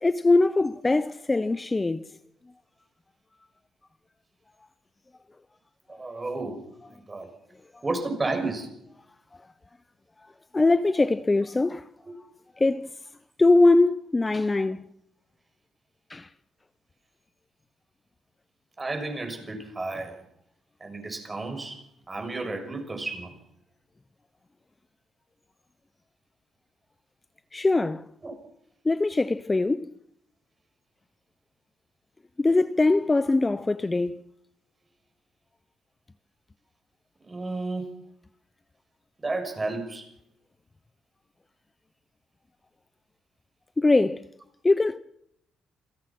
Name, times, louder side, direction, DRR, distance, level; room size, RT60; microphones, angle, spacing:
voice 1, 0.0-2.0 10.2-11.9 12.6-12.9 13.4-14.8 16.1-16.3 27.5-28.1 28.8-29.9 32.4-34.2 43.8-44.3 44.6-45.0, left 2 dB, 20° left, 0.8 m, -22 dB
voice 2, 5.9-7.3 7.8-8.7 18.8-20.2 20.8-23.4 28.2-28.3 37.3-37.9 39.2-40.1, right 3 dB, 25° right, 6.5 m, -32 dB
27.5 x 17.0 x 6.0 m
cardioid pair, 90°, 0 cm